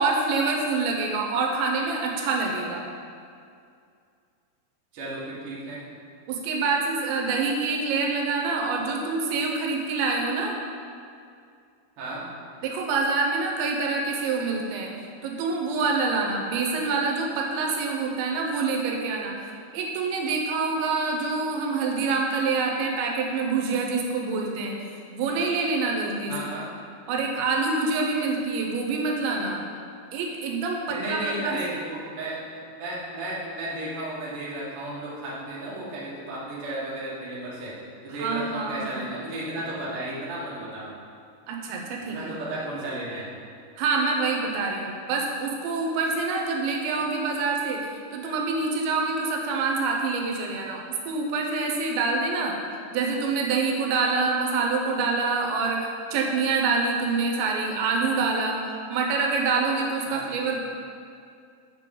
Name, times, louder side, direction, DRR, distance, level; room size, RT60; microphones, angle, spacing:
voice 1, 0.0-2.8 6.3-10.6 12.6-14.9 15.2-24.8 25.1-26.3 27.1-29.6 30.1-31.6 38.2-39.1 41.5-42.3 43.8-52.6 52.9-58.6 58.9-60.6, right 4 dB, 80° right, 0 dB, 3.0 m, -26 dB
voice 2, 4.9-5.8 12.0-12.2 26.3-26.7 30.9-32.4 32.7-37.7 38.0-40.9 42.1-43.2 60.0-60.4, right 1 dB, 60° right, -8 dB, 1.4 m, -34 dB
7.5 x 6.8 x 3.7 m, 2.3 s
omnidirectional pair, 5.3 m